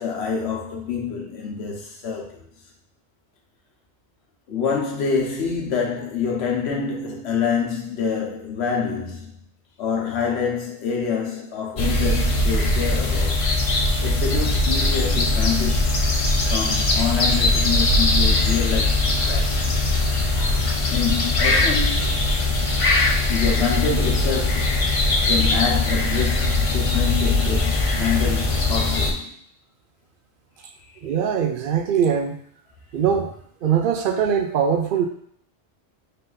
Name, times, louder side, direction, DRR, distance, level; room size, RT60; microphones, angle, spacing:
voice 1, 0.0-2.5 4.5-9.5 9.8-13.4 14.0-16.0 16.5-19.6 20.9-22.0 23.3-24.9 25.3-29.4, left 6 dB, 70° left, 1.1 m, -26 dB
sound 1, 11.8-29.1, left 2 dB, 45° left, 0.4 m, -20 dB
voice 2, 31.0-32.4 32.9-33.3 33.6-35.1, right 7 dB, 60° right, 0.6 m, -21 dB
3.8 x 2.7 x 3.8 m
omnidirectional pair, 1.2 m